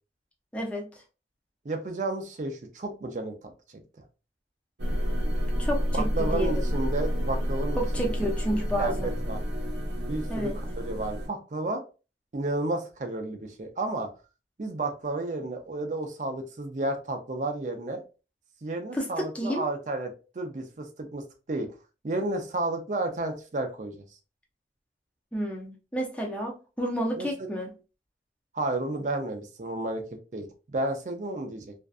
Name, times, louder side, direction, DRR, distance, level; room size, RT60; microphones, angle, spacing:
voice 1, 0.5-0.9 5.6-6.7 7.8-9.2 10.3-10.6 18.9-19.7 25.3-27.7, equal, 5° left, -1 dB, 0.5 m, -30 dB
voice 2, 1.6-3.5 5.9-9.4 10.1-11.8 12.3-14.1 14.6-18.0 18.6-21.7 22.0-24.0 27.2-27.5 28.5-30.0 30.3-31.7, right 2 dB, 40° right, 5 dB, 0.4 m, -32 dB
sound 1, 4.8-11.3, equal, 80° right, 0.7 m, -29 dB
2.5 x 2.2 x 2.3 m, 0.32 s
head